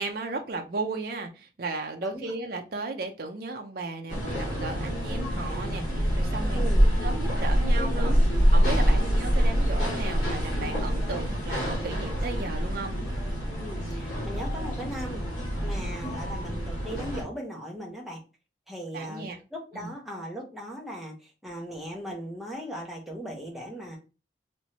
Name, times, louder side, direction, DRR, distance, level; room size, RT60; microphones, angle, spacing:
voice 1, 0.0-6.6 7.0-13.0 18.9-19.4 19.7-19.9, right 3 dB, 55° right, 0.5 m, -35 dB
voice 2, 2.0-2.3 6.5-6.9 8.9-9.2 9.7-9.8 13.6-15.3 15.6-18.2 18.7-24.0, equal, ahead, 0.8 m, -38 dB
sound 1, 4.1-17.2, equal, 45° left, 1.8 m, -26 dB
sound 2, 4.9-5.8 6.7-7.7 8.4-9.3 10.2-11.0 11.9-12.6 14.2-15.0 15.9-16.7, left 3 dB, 80° left, 0.8 m, -46 dB
3.2 x 3.0 x 2.8 m
head